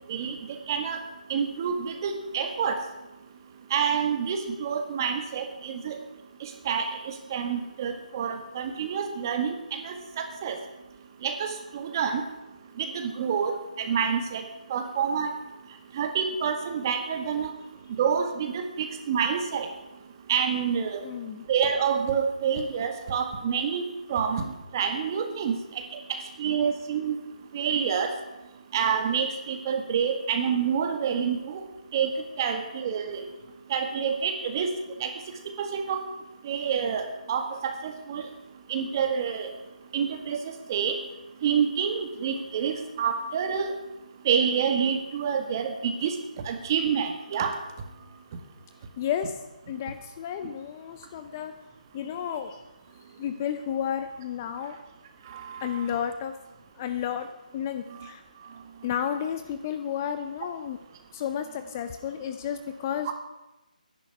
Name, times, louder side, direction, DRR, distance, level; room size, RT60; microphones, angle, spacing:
voice 1, 0.1-1.0 1.3-2.8 3.7-6.0 6.4-10.6 11.2-12.2 12.8-14.4 14.7-15.3 15.9-17.5 18.0-19.7 20.3-21.0 21.5-23.8 24.1-24.5 24.7-27.2 27.5-28.1 28.7-31.6 31.9-32.1 32.4-33.2 33.7-34.7 35.0-35.1 35.6-36.0 36.4-38.3 38.7-39.5 39.9-41.0 41.4-43.7 44.3-46.1 46.5-47.6 55.3-55.8 58.0-58.1 63.1-63.2, right 7 dB, 25° right, 6 dB, 1.8 m, -28 dB
voice 2, 21.0-21.4 49.0-49.4 49.7-51.6 51.9-52.6 53.2-54.8 55.6-56.4 56.8-58.2 58.8-60.8 61.1-63.1, left 9 dB, 20° left, 9 dB, 0.7 m, -32 dB
11.5 x 11.0 x 9.9 m, 1.0 s
hypercardioid pair, 170°, 5 cm